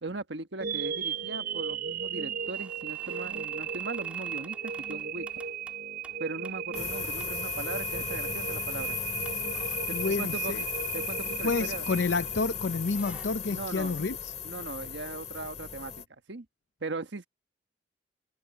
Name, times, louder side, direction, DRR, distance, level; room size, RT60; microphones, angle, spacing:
voice 1, 0.0-5.4 6.2-9.0 9.9-10.6 10.9-11.9 13.5-14.0 14.4-16.5 16.8-17.3, right 3 dB, 85° right, 1.4 m, -39 dB
sound 1, 0.6-12.7, right 8 dB, 55° right, 0.5 m, -36 dB
sound 2, 2.4-6.9 7.2-7.4 7.7-8.2 8.6-8.7 9.2-12.3 12.6-13.3, right 1 dB, 10° right, 2.8 m, -54 dB
sound 3, 6.7-16.1, left 8 dB, 40° left, 2.1 m, -36 dB
voice 2, 9.9-10.6 11.4-14.3, left 3 dB, 85° left, 0.6 m, -29 dB
head